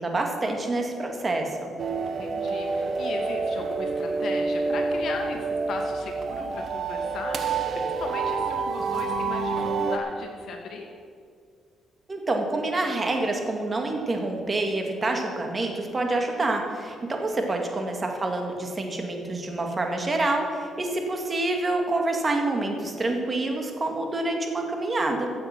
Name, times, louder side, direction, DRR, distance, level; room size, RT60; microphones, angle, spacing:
voice 1, 0.0-1.7 12.1-25.3, right 2 dB, 30° right, 3 dB, 2.1 m, -27 dB
sound 1, 1.8-10.0, right 4 dB, 55° right, 1.0 m, -28 dB
voice 2, 2.0-10.9 17.4-17.6, left 4 dB, 65° left, 2 dB, 2.3 m, -37 dB
15.0 x 7.5 x 6.1 m, 2.2 s
cardioid pair, 90°, 0 cm